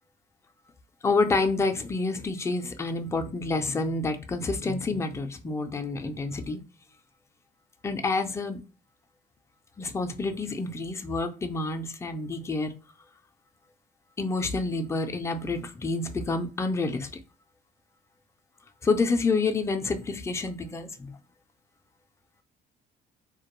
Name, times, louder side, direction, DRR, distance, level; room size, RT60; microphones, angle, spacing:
voice 1, 1.0-6.6 7.8-8.6 9.8-12.7 14.2-17.1 18.8-21.1, left 3 dB, 15° left, 0.3 m, -28 dB
2.2 x 2.1 x 2.9 m
cardioid pair, 110°, 17 cm